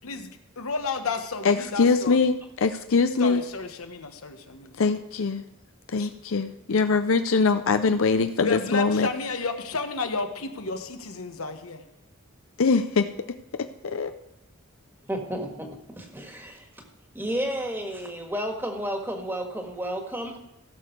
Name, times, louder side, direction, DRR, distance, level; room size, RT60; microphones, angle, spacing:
voice 1, 0.6-2.2 3.2-4.7 5.9-6.1 8.4-11.8, left 4 dB, 85° left, 6 dB, 1.2 m, -32 dB
voice 2, 1.4-3.4 4.8-5.4 5.9-9.1 12.6-13.1 13.8-14.1, left 4 dB, 65° left, 9 dB, 0.6 m, -22 dB
voice 3, 15.1-16.7 17.1-20.4, equal, 10° right, 3 dB, 1.7 m, -32 dB
16.0 x 7.0 x 4.6 m, 0.92 s
head